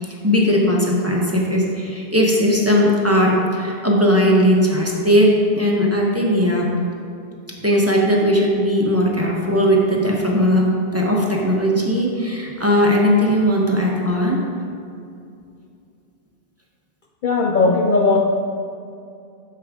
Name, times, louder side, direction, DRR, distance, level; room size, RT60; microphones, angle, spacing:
voice 1, 0.0-6.7 7.6-14.5, equal, 15° right, -3 dB, 0.9 m, -18 dB
voice 2, 17.2-18.2, left 3 dB, 60° left, 2 dB, 0.6 m, -17 dB
8.6 x 6.7 x 3.6 m, 2.5 s
omnidirectional pair, 1.1 m